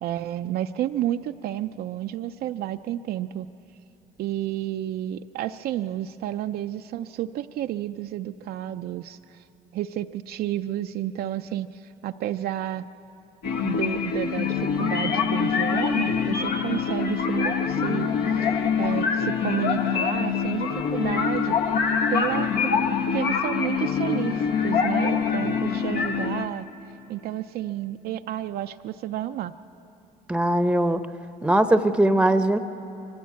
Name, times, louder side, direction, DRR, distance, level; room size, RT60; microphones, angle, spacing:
voice 1, 0.0-3.5 4.2-9.4 9.7-12.9 13.6-21.6 22.1-22.7 23.1-26.7 27.1-29.5, right 12 dB, 65° right, 7 dB, 0.4 m, -31 dB
sound 1, 13.4-26.5, left 6 dB, 75° left, 1.1 m, -25 dB
voice 2, 30.3-31.0 31.4-32.6, right 1 dB, 5° right, 10 dB, 0.7 m, -20 dB
23.5 x 15.0 x 8.3 m, 2.9 s
cardioid pair, 110°, 17 cm